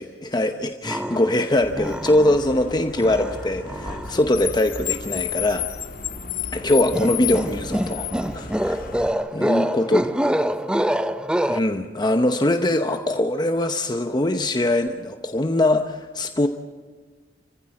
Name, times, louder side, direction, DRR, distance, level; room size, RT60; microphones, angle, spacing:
voice 1, 0.0-5.6 6.5-8.9 9.3-10.0 11.5-16.5, left 1 dB, 25° left, 6 dB, 0.9 m, -22 dB
sound 1, 0.8-1.4 1.7-2.6 3.0-4.2 6.9-11.6, equal, 5° right, 0.6 m, -26 dB
Car, 1.6-9.1, left 8 dB, 50° left, 1.8 m, -32 dB
voice 2, 6.1-7.2 8.9-10.9, right 1 dB, 20° right, 3 dB, 5.7 m, -44 dB
29.0 x 15.5 x 7.7 m, 1.5 s
head